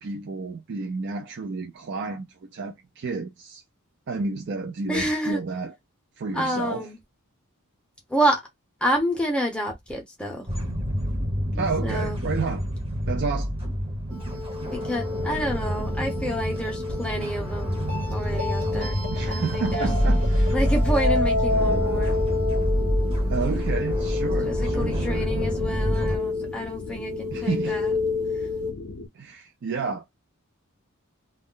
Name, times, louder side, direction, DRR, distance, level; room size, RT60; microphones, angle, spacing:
voice 1, 0.0-3.6 4.1-5.7 6.2-6.9 11.5-12.6 13.1-13.5 19.1-20.5 21.5-22.4 23.3-25.3 27.3-27.8 29.1-30.1, right 4 dB, 55° right, 0.4 m, -31 dB
voice 2, 4.9-5.4 6.3-7.0 8.1-8.4 8.8-10.5 11.5-12.2 14.6-17.8 18.1-19.0 19.3-19.9 20.5-22.2 24.4-27.9, equal, 5° left, 0.6 m, -28 dB
Distant Battlefield Soundscape, 10.5-26.2, equal, 25° right, 0.9 m, -27 dB
sound 1, 14.2-28.7, left 3 dB, 80° right, 0.9 m, -30 dB
Loud Silence, 21.5-29.1, left 3 dB, 55° left, 0.5 m, -38 dB
2.3 x 2.0 x 3.7 m
head